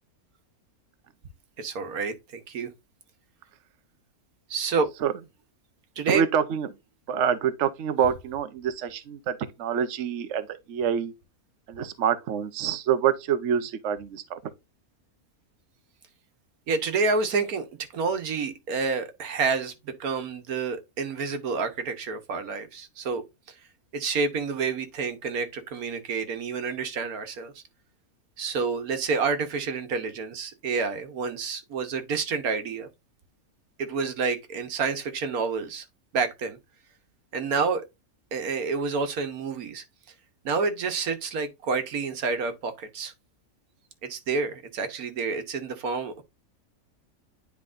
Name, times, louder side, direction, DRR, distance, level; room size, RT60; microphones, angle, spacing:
voice 1, 1.6-2.7 4.5-4.9 6.0-6.2 16.7-17.7 17.9-23.2 23.5-23.6 23.9-27.6 28.4-32.9 33.8-35.8 36.1-36.6 37.3-37.9 38.3-39.8 40.4-43.1 44.0-46.2, right 4 dB, 85° right, 1.6 m, -29 dB
voice 2, 6.1-6.7 7.1-11.1 11.7-14.4, right 8 dB, 60° right, 1.0 m, -26 dB
9.8 x 4.7 x 2.5 m
omnidirectional pair, 1.5 m